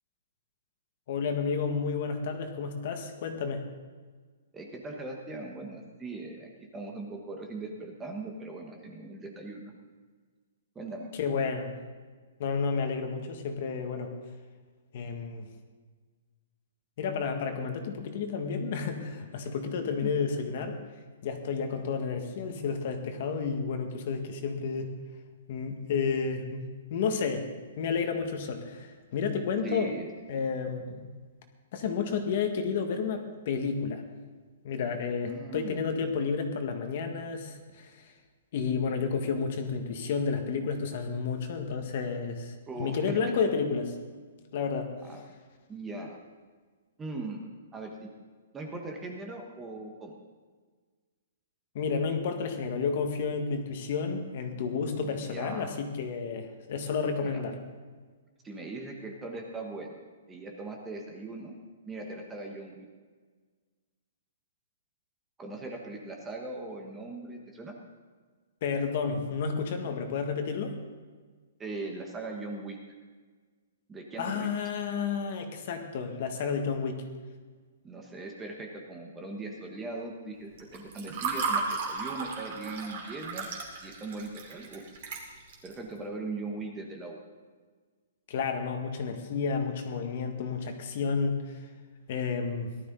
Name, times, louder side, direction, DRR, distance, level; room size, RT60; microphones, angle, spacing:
voice 1, 1.1-3.6 11.2-11.7 12.4-14.1 14.9-15.5 17.0-20.8 21.2-24.9 25.5-26.6 26.9-27.5 27.8-29.9 30.3-31.1 31.7-34.0 34.6-38.0 38.5-43.9 44.5-44.9 51.7-57.5 68.6-70.8 74.2-77.0 88.3-91.6 92.1-92.7, left 5 dB, 40° left, 5 dB, 1.7 m, -31 dB
voice 2, 4.5-9.7 10.7-11.1 20.0-20.1 29.6-30.1 35.2-35.9 42.7-43.2 45.0-45.2 45.7-46.2 47.0-48.1 48.5-50.2 55.0-55.7 57.2-57.4 58.4-60.0 60.3-61.6 61.8-62.8 65.4-67.7 71.6-72.8 73.9-74.5 77.8-83.5 83.8-84.8 85.6-87.2, right 3 dB, 10° right, 1 dB, 1.2 m, -40 dB
Water / Fill (with liquid), 80.6-85.7, right 4 dB, 40° right, 2.9 m, -34 dB
18.5 x 12.5 x 4.0 m, 1.5 s
hypercardioid pair, 170°, 0 cm